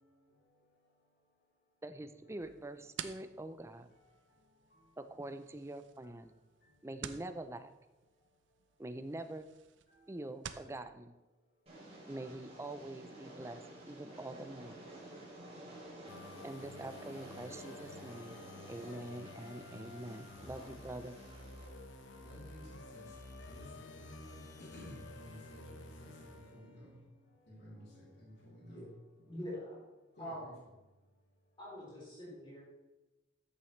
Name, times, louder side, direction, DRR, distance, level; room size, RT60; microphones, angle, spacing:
voice 1, 1.8-3.9 5.0-6.3 6.8-7.7 8.8-9.5 10.1-11.1 12.1-13.6 13.9-14.8 16.4-18.4 18.7-21.2, right 1 dB, 15° right, 9 dB, 0.5 m, -45 dB
sound 1, 2.4-10.7, right 8 dB, 75° right, 0.6 m, -51 dB
Train, 11.7-21.7, right 1 dB, 35° right, 3.0 m, -52 dB
sound 2, 16.1-26.9, left 2 dB, 90° left, 1.2 m, -52 dB
voice 2, 22.2-23.1 23.5-26.9 27.5-28.9 30.2-30.5, left 1 dB, 65° left, -6 dB, 3.5 m, -53 dB
voice 3, 29.3-29.8 30.2-30.5 31.6-32.6, equal, 25° left, -7 dB, 3.8 m, -44 dB
13.5 x 7.1 x 3.2 m, 1.1 s
head